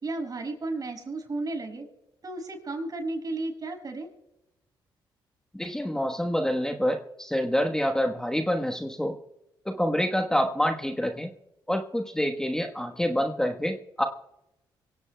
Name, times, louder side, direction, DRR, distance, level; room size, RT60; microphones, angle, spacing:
voice 1, 0.0-1.9 2.2-4.1, right 2 dB, 45° right, 2 dB, 5.9 m, -33 dB
voice 2, 5.5-9.2 9.6-11.3 11.7-14.0, equal, 5° left, 4 dB, 1.2 m, -27 dB
24.5 x 16.5 x 2.2 m, 0.88 s
cardioid pair, 70°, 9 cm